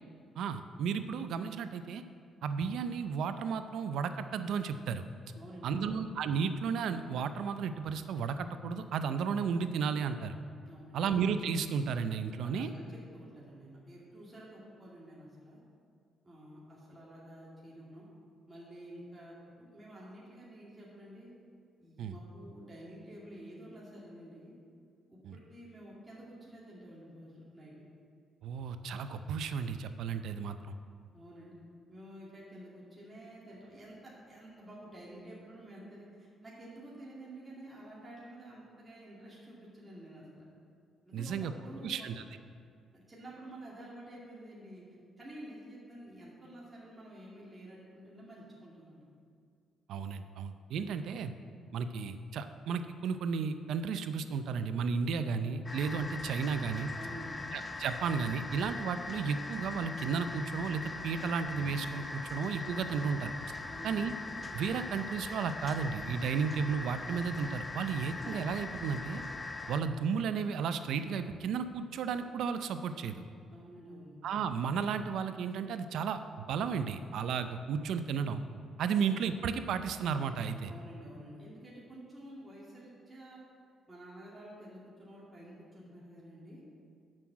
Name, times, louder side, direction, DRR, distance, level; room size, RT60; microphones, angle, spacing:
voice 1, 0.4-2.0 2.4-5.0 5.6-10.4 10.9-12.7 22.0-22.1 25.2-25.4 28.4-30.7 41.1-41.5 41.8-42.2 49.9-51.3 51.7-56.9 57.5-63.3 63.8-64.1 64.5-69.2 69.7-73.2 74.2-78.4 78.8-80.7, right 6 dB, 75° right, 10 dB, 0.5 m, -33 dB
voice 2, 5.3-5.9 10.7-11.1 12.4-15.6 16.2-18.1 18.5-21.3 21.8-24.5 25.1-27.7 31.1-31.5 31.9-40.4 41.0-42.1 42.9-44.8 45.2-49.1 56.9-57.4 63.7-64.1 73.5-74.2 80.7-83.4 83.9-86.6, right 1 dB, 20° right, -7 dB, 2.3 m, -50 dB
sound 1, 55.6-69.8, left 3 dB, 30° left, 0.7 m, -41 dB
7.5 x 6.2 x 7.3 m, 2.3 s
cardioid pair, 90°, 0 cm